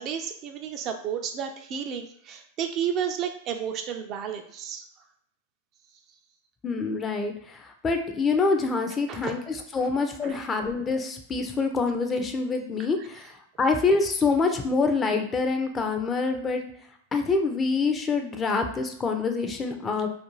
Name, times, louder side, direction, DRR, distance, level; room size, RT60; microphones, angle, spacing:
voice 1, 0.0-4.8 9.1-9.3 9.8-9.9 10.2-10.7, right 8 dB, 40° right, 5 dB, 0.3 m, -32 dB
voice 2, 6.6-7.6 7.8-9.4 9.7-13.3 13.6-16.6 17.1-20.1, left 4 dB, 25° left, 5 dB, 0.4 m, -26 dB
2.4 x 2.3 x 3.0 m, 0.68 s
hypercardioid pair, 105°, 0 cm